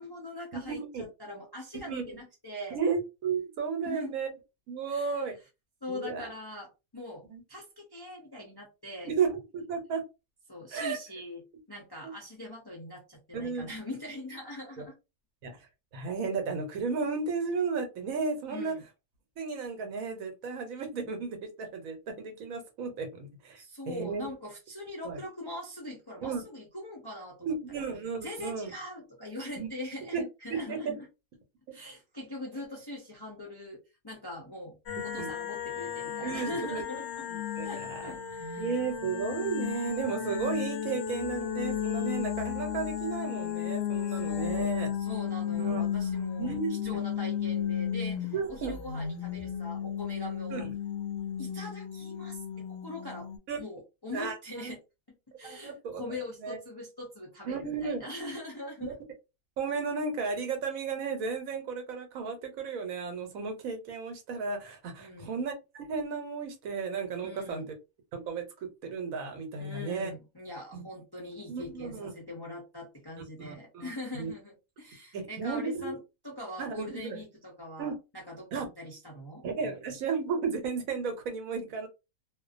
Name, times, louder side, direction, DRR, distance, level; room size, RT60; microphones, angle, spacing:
voice 1, 0.0-2.8 3.8-4.1 4.9-5.2 5.8-9.1 10.5-11.4 11.7-15.0 18.5-18.8 23.6-27.5 28.2-31.1 31.7-34.8 35.0-37.3 37.6-38.7 44.1-44.7 45.0-46.6 46.8-50.7 51.4-53.3 53.6-54.8 55.4-58.9 65.0-65.3 67.2-67.7 69.6-76.0 76.2-79.4, left 1 dB, 35° left, -1 dB, 0.3 m, -42 dB
voice 2, 0.5-1.0 1.8-2.2 2.7-4.3 4.7-5.3 5.9-6.3 7.3-7.4 9.0-10.0 10.7-11.0 12.0-12.1 13.3-13.7 15.4-15.6 15.9-18.8 19.4-24.3 25.0-25.2 26.2-26.4 27.4-28.7 29.6-29.7 30.1-30.2 30.5-30.9 35.2-35.3 36.2-36.8 37.3-38.1 38.6-44.9 45.6-45.8 46.4-47.0 48.3-48.7 50.5-50.7 53.5-53.6 54.1-54.7 55.4-56.6 57.4-58.0 58.8-58.9 59.6-67.8 68.1-70.1 70.7-70.8 71.5-72.1 73.4-74.3 75.1-75.9 76.6-77.2 77.8-77.9 78.5-78.7 79.4-81.9, right 5 dB, 75° right, 5 dB, 1.1 m, -34 dB
sound 1, 34.9-53.4, left 9 dB, 65° left, 0.7 m, -34 dB
2.5 x 2.1 x 2.4 m, 0.26 s
omnidirectional pair, 1.5 m